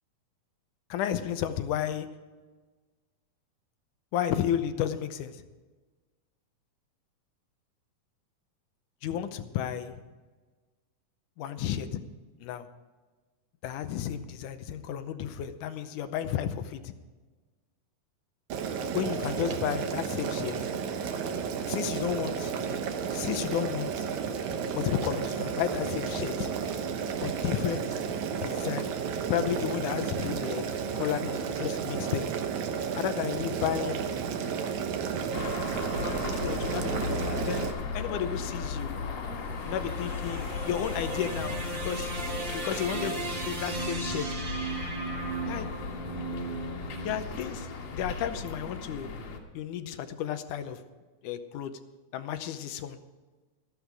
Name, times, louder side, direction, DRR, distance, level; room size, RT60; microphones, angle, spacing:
voice 1, 0.9-2.0 4.1-5.4 9.0-10.0 11.4-12.0 12.4-12.7 13.6-16.5 16.8-16.9 18.9-20.5 21.7-22.5 23.1-24.1 24.7-26.5 27.2-27.9 28.4-28.9 29.3-30.6 30.9-32.3 33.0-34.1 35.9-37.7 37.9-38.9 39.7-44.3 45.5-45.7 47.0-47.7 47.9-49.1 49.5-50.8 51.2-51.7 52.1-53.0, left 10 dB, 80° left, 10 dB, 2.2 m, -32 dB
Boiling, 18.5-37.7, right 6 dB, 70° right, 2.3 m, -32 dB
sound 1, 35.3-49.4, left 4 dB, 60° left, 2.7 m, -36 dB
sound 2, 39.4-47.7, right 2 dB, 40° right, 0.8 m, -36 dB
14.0 x 12.0 x 4.7 m, 1.3 s
omnidirectional pair, 3.7 m